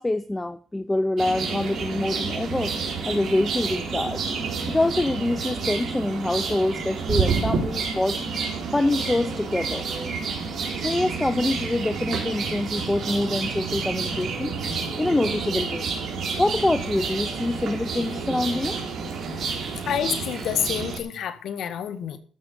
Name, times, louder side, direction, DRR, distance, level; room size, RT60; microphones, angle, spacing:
voice 1, 0.0-2.7 3.1-4.3 4.7-8.2 8.7-9.9 10.7-14.6 15.0-15.9 16.4-18.8, left 2 dB, 15° left, 12 dB, 0.8 m, -25 dB
sound 1, 1.2-21.0, right 5 dB, 55° right, 4.1 m, -29 dB
voice 2, 19.8-22.2, left 8 dB, 70° left, 11 dB, 1.7 m, -28 dB
14.5 x 6.3 x 7.0 m, 0.40 s
cardioid pair, 90°, 0 cm